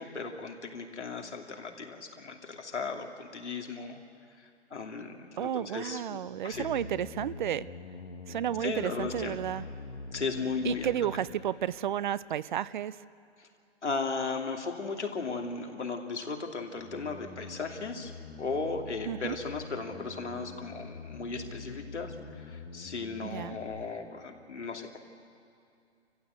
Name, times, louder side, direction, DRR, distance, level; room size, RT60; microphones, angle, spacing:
voice 1, 0.0-4.0 4.4-6.7 8.3-9.4 10.1-10.9 13.4-13.5 13.8-18.1 18.4-25.0, left 4 dB, 90° left, 2 dB, 2.7 m, -36 dB
voice 2, 5.4-7.7 8.3-9.7 10.6-13.0 19.1-19.4 23.2-23.6, right 10 dB, 45° right, 18 dB, 0.5 m, -32 dB
sound 1, 6.5-11.5 16.8-23.8, left 3 dB, 60° left, 1.7 m, -45 dB
27.0 x 15.0 x 8.2 m, 2.5 s
hypercardioid pair, 140°, 34 cm